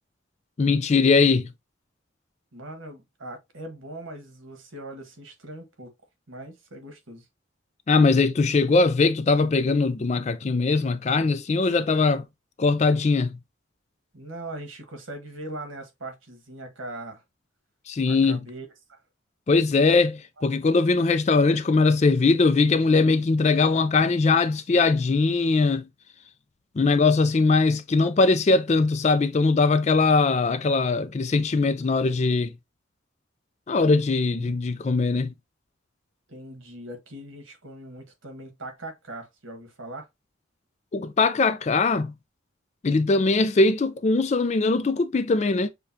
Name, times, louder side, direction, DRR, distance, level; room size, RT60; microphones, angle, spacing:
voice 1, 0.6-1.5 7.9-12.2 12.6-13.3 17.9-18.4 19.5-25.9 26.8-32.5 33.7-35.3 40.9-42.1 42.8-45.7, left 3 dB, 35° left, 0.3 m, -21 dB
voice 2, 2.5-5.9 6.3-7.3 14.1-17.2 18.1-19.0 34.3-34.6 36.3-40.1, right 1 dB, 85° right, 1.4 m, -40 dB
6.6 x 2.3 x 2.6 m
head